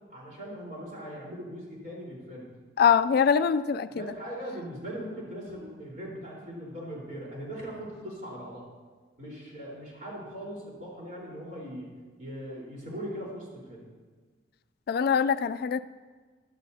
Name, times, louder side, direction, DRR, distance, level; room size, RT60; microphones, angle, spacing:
voice 1, 0.1-2.5 3.9-8.7 9.2-11.9 12.2-13.9, equal, 50° right, -4 dB, 4.0 m, -40 dB
voice 2, 2.8-4.1 14.9-15.8, left 7 dB, 55° left, 13 dB, 0.3 m, -23 dB
14.5 x 12.0 x 2.8 m, 1.4 s
head